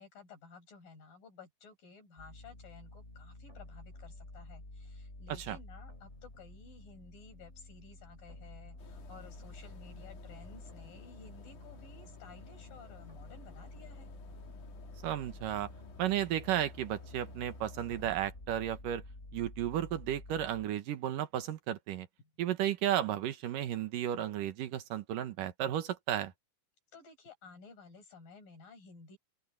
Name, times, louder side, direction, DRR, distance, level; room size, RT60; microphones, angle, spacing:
voice 1, 0.0-14.1 22.2-22.3 26.9-29.2, left 4 dB, 80° left, 7.6 m, -55 dB
sound 1, 2.2-20.7, left 2 dB, 20° left, 4.5 m, -50 dB
sound 2, 8.8-18.2, left 5 dB, 65° left, 4.3 m, -57 dB
voice 2, 15.0-15.7 16.0-19.0 19.3-22.1 22.4-26.3, right 11 dB, 75° right, 2.9 m, -33 dB
open air
omnidirectional pair, 3.9 m